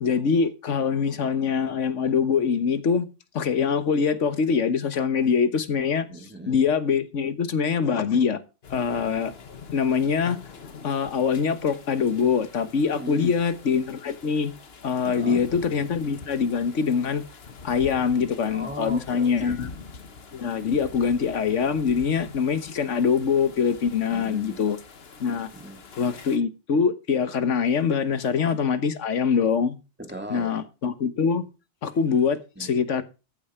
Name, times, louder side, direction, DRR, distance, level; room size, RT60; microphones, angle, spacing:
voice 1, 0.0-3.1 3.3-6.1 6.5-8.4 8.7-9.3 9.7-10.4 10.8-14.5 14.8-17.2 17.6-19.7 20.3-24.8 25.2-25.5 26.0-29.8 30.3-31.4 31.8-33.0, left 6 dB, 85° left, 1.5 m, -24 dB
voice 2, 6.1-6.6 12.9-13.4 15.0-15.4 18.5-19.6 24.1-24.6 25.5-25.8 30.0-30.5 32.6-32.7, right 1 dB, 10° right, 2.5 m, -38 dB
sound 1, 8.6-26.4, left 5 dB, 55° left, 1.4 m, -45 dB
14.0 x 8.6 x 4.4 m
omnidirectional pair, 1.2 m